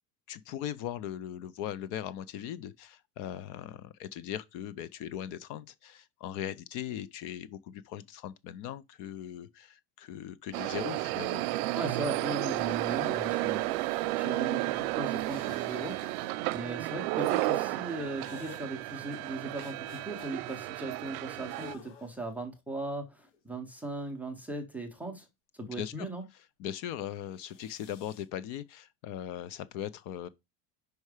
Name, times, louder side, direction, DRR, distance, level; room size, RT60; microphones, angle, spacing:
voice 1, 0.3-11.5 25.6-26.1 26.3-30.3, left 10 dB, 50° left, 0.5 m, -39 dB
sound 1, 10.5-21.7, right 18 dB, 90° right, 0.6 m, -32 dB
voice 2, 11.7-25.3 25.6-26.2, right 2 dB, 5° right, 0.5 m, -38 dB
sound 2, 11.8-13.9 15.2-16.3 17.2-17.6 18.2-18.6 19.5-20.6 21.4-22.3 23.1-24.2 27.3-28.2, left 6 dB, 85° left, 2.7 m, -53 dB
5.5 x 4.7 x 4.8 m
cardioid pair, 180°, 43 cm